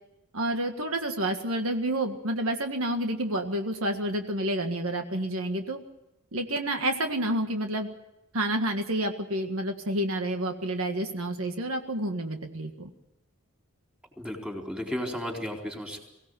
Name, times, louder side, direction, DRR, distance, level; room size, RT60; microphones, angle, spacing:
voice 1, 0.3-5.8 6.3-7.9 8.3-12.9, right 1 dB, 65° right, 5 dB, 1.8 m, -29 dB
voice 2, 14.2-16.0, left 1 dB, 5° right, 0 dB, 4.0 m, -34 dB
23.5 x 16.5 x 8.0 m, 0.93 s
head